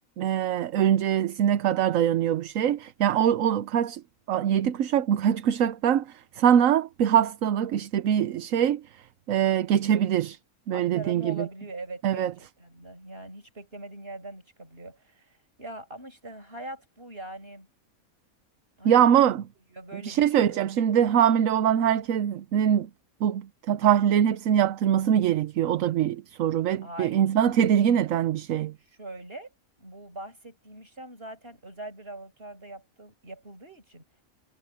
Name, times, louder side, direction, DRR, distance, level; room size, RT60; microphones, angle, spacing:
voice 1, 0.2-4.0 4.3-9.0 9.3-10.4 10.7-11.5 12.0-12.3 18.8-19.4 20.0-22.9 23.2-28.7, right 9 dB, 70° right, 1.1 m, -23 dB
voice 2, 10.7-12.3 12.6-17.7 18.8-19.0 19.7-20.6 26.8-27.2 28.9-29.5 29.8-34.0, right 2 dB, 40° right, 6.8 m, -42 dB
omnidirectional pair, 1.5 m